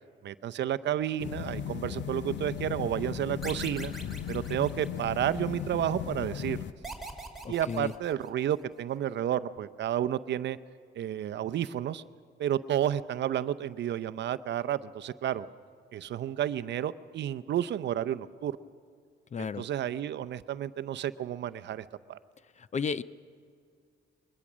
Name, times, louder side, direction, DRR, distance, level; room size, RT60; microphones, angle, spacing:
voice 1, 0.2-3.9 4.3-6.7 7.5-10.6 11.0-12.0 12.4-15.5 15.9-18.6 19.4-22.2, right 11 dB, 60° right, 13 dB, 0.6 m, -31 dB
sound 1, 1.2-6.7, left 9 dB, 65° left, 0.8 m, -37 dB
sound 2, 3.4-5.4 6.8-8.6, right 2 dB, ahead, 2.6 m, -43 dB
voice 2, 7.4-7.9 19.3-19.6 22.6-23.0, left 6 dB, 35° left, 17 dB, 0.5 m, -33 dB
22.0 x 20.5 x 6.2 m, 2.2 s
cardioid pair, 90°, 20 cm